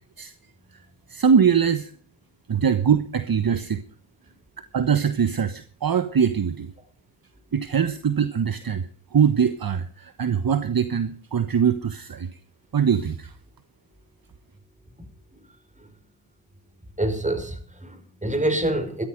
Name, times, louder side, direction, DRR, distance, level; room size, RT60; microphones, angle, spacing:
voice 1, 1.1-1.9 2.5-3.8 4.7-6.7 7.5-12.3 12.7-13.3, right 7 dB, 45° right, 11 dB, 1.3 m, -22 dB
voice 2, 17.0-19.0, right 1 dB, 15° right, 9 dB, 5.4 m, -26 dB
15.0 x 12.5 x 5.2 m, 0.43 s
cardioid pair, 50°, 47 cm